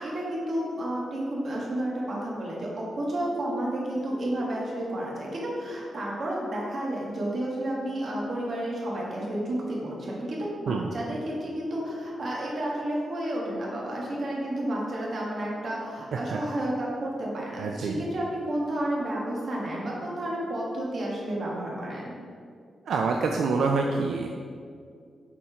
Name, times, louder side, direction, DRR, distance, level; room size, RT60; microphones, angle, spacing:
voice 1, 0.0-22.1, right 1 dB, 45° right, -4 dB, 1.6 m, -31 dB
voice 2, 17.6-18.0 22.9-24.3, right 4 dB, 75° right, 2 dB, 0.4 m, -26 dB
7.2 x 4.2 x 4.9 m, 2.2 s
wide cardioid pair, 155°, 0 cm